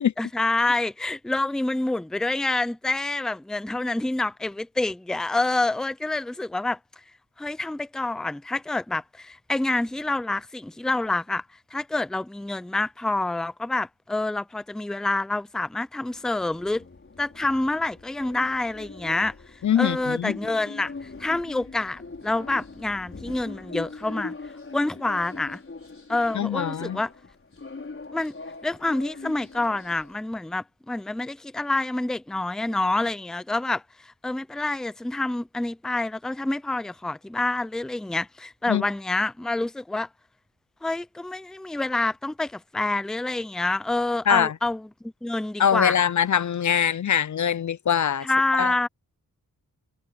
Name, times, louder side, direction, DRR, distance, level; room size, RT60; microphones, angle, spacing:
voice 1, 0.2-6.8 7.4-11.4 11.7-16.9 17.2-19.3 19.8-24.4 24.7-25.6 26.1-27.1 28.1-28.3 28.6-40.1 40.8-44.9 45.2-46.0 48.2-48.9, left 2 dB, ahead, 0.5 m, -27 dB
sound 1, 16.0-30.2, left 3 dB, 35° left, 5.8 m, -41 dB
voice 2, 19.6-20.4 26.3-27.0 38.7-38.8 44.3-44.5 45.6-48.3 48.6-48.7, left 8 dB, 55° left, 0.6 m, -23 dB
wide cardioid pair, 165°, 36 cm